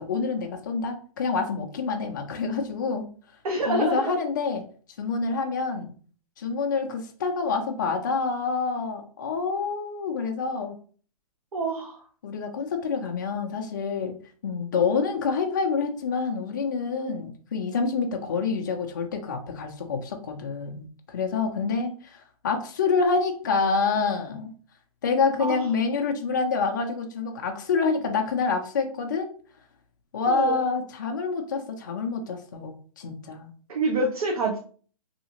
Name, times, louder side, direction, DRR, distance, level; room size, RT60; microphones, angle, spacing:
voice 1, 0.0-3.1 3.7-4.7 5.0-5.9 6.4-10.8 12.2-14.2 14.4-24.5 25.0-29.3 30.1-33.5, left 4 dB, 30° left, 3 dB, 0.4 m, -27 dB
voice 2, 3.4-4.0 11.5-12.0 25.4-25.6 30.3-30.6 33.7-34.6, right 2 dB, 65° right, 0 dB, 0.7 m, -26 dB
2.7 x 2.4 x 2.8 m, 0.43 s
hypercardioid pair, 170°, 19 cm